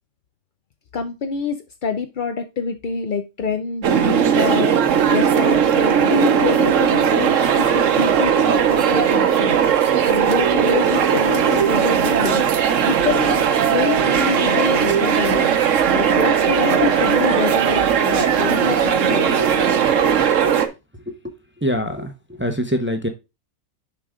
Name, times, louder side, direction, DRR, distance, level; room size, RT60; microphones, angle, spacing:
voice 1, 0.9-12.5 12.8-15.6 15.9-19.4, left 5 dB, 60° left, 6 dB, 0.5 m, -26 dB
sound 1, 3.8-20.7, right 8 dB, 60° right, 1.1 m, -18 dB
voice 2, 21.6-22.1 22.4-23.1, equal, 15° right, 5 dB, 0.5 m, -23 dB
6.8 x 5.0 x 3.6 m, 0.26 s
omnidirectional pair, 1.6 m